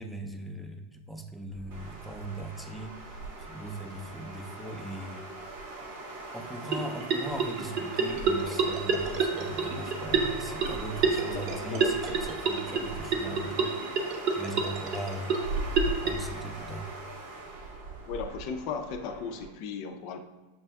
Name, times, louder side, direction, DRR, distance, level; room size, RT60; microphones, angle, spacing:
voice 1, 0.0-5.3 6.3-13.8 14.3-15.4 16.0-16.9, right 1 dB, ahead, 1 dB, 0.4 m, -40 dB
sound 1, 1.5-19.5, right 1 dB, 85° right, 0.9 m, -43 dB
sound 2, 1.7-19.5, right 2 dB, 70° right, 1.2 m, -41 dB
sound 3, 6.7-16.1, right 5 dB, 50° right, 0.7 m, -29 dB
voice 2, 11.3-11.9 18.1-20.2, left 5 dB, 55° left, 6 dB, 0.4 m, -36 dB
6.7 x 2.5 x 2.2 m, 1.2 s
hypercardioid pair, 105°, 0 cm